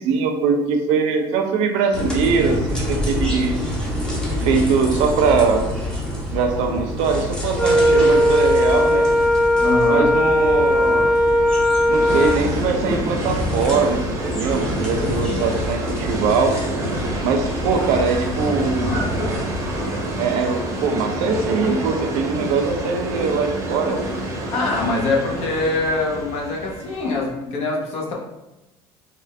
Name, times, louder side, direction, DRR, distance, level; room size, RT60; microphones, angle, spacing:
voice 1, 0.0-3.5 4.4-5.7 6.3-9.1 9.9-11.1 11.9-16.6 17.2-18.9 20.2-24.0, right 5 dB, 75° right, 4 dB, 0.6 m, -21 dB
sound 1, 1.9-19.8, left 1 dB, 5° left, 0.7 m, -28 dB
Wind instrument woodwind instrument, 7.6-12.4, equal, 25° left, 1.1 m, -17 dB
voice 2, 9.6-10.1 18.3-19.4 24.5-28.1, left 2 dB, 60° left, -2 dB, 1.0 m, -24 dB
sound 2, 11.9-27.3, right 1 dB, 25° right, 0.8 m, -28 dB
3.7 x 2.4 x 3.2 m, 0.97 s
cardioid pair, 140°, 12 cm